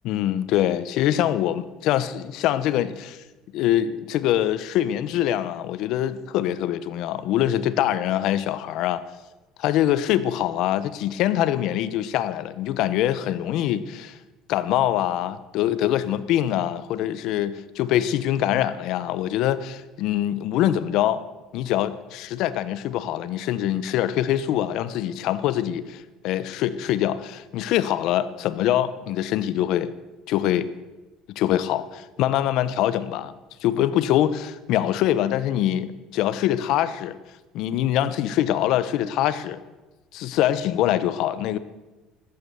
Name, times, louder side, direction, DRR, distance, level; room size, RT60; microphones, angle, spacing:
voice 1, 0.0-3.2 3.5-9.0 9.6-14.2 14.5-21.2 21.5-29.9 30.3-30.7 31.3-33.3 33.6-37.2 37.5-39.6 40.1-41.6, left 12 dB, 60° left, 14 dB, 0.9 m, -24 dB
15.0 x 12.5 x 7.0 m, 1.1 s
cardioid pair, 150°, 0 cm